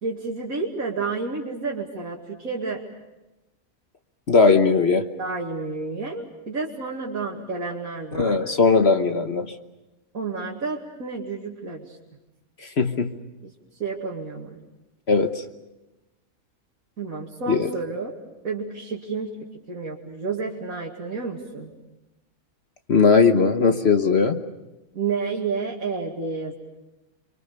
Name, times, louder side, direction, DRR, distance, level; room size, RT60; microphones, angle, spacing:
voice 1, 0.0-2.8 5.2-8.4 10.1-12.0 13.4-13.5 13.8-14.6 17.0-18.1 18.4-19.4 19.7-21.7 24.9-26.6, right 4 dB, 75° right, -3 dB, 2.7 m, -30 dB
voice 2, 4.3-5.1 8.1-9.5 12.6-13.1 15.1-15.4 17.5-17.7 22.9-24.4, left 4 dB, 50° left, 7 dB, 1.3 m, -19 dB
30.0 x 23.5 x 6.8 m, 1.0 s
omnidirectional pair, 1.5 m